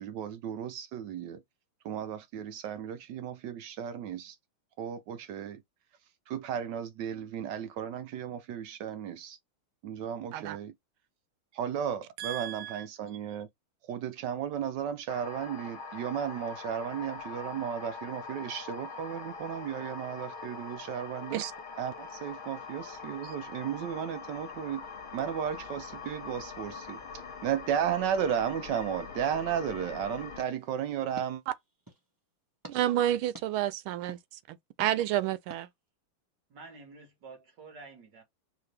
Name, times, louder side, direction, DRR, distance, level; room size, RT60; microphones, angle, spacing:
voice 1, 0.0-1.4 1.8-4.4 4.8-5.6 6.3-9.4 9.8-10.7 11.5-13.5 13.8-21.4 21.8-24.9 25.1-31.4, right 9 dB, 75° right, 1.0 m, -34 dB
voice 2, 12.2-12.8 21.3-21.5 32.7-35.7, right 12 dB, 90° right, 1.4 m, -30 dB
sound 1, 15.1-30.4, left 4 dB, 60° left, 0.5 m, -43 dB
sound 2, 30.4-32.1 32.6-32.8 33.3-33.5 34.1-34.2 34.8-34.9 35.5-35.6, right 1 dB, 25° right, 0.4 m, -49 dB
voice 3, 36.5-38.2, right 3 dB, 60° right, 2.4 m, -49 dB
4.7 x 2.7 x 3.3 m
omnidirectional pair, 2.2 m